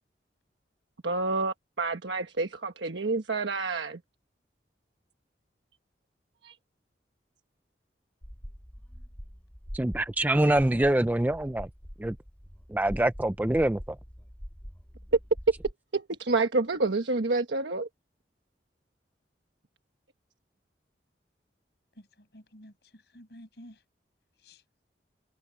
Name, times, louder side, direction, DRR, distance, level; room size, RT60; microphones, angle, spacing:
voice 1, 1.0-4.0 6.4-6.5 15.9-17.9, right 3 dB, 85° right, 1.2 m, -28 dB
sound 1, 8.2-15.7, equal, 10° left, 2.6 m, -44 dB
voice 2, 9.7-11.7 12.0-12.2 12.7-13.8, right 1 dB, 10° right, 0.3 m, -25 dB
voice 3, 22.0-23.8 24.4-24.6, equal, 65° left, 6.3 m, -51 dB
head